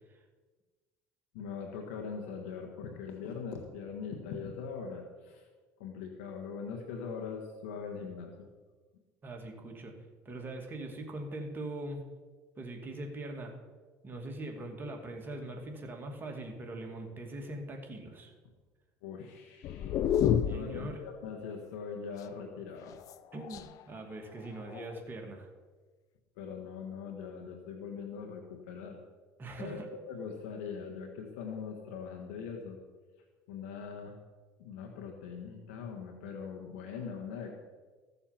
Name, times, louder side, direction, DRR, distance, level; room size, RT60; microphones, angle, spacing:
voice 1, 1.3-5.4 5.8-8.5 19.0-19.9 20.5-23.0 26.4-29.0 29.6-29.8 30.1-32.8 33.5-34.2 34.6-37.5, left 6 dB, 85° left, 2 dB, 1.6 m, -41 dB
voice 2, 9.2-12.0 12.6-13.6 14.0-18.3 20.5-21.0 23.3-25.5 29.4-29.9, right 2 dB, 30° right, 3 dB, 2.5 m, -42 dB
sound 1, 19.6-20.9 22.7-23.8 24.6-25.1, left 9 dB, 55° left, 0.6 m, -30 dB
15.0 x 6.9 x 5.9 m, 1.3 s
supercardioid pair, 95°, 7 cm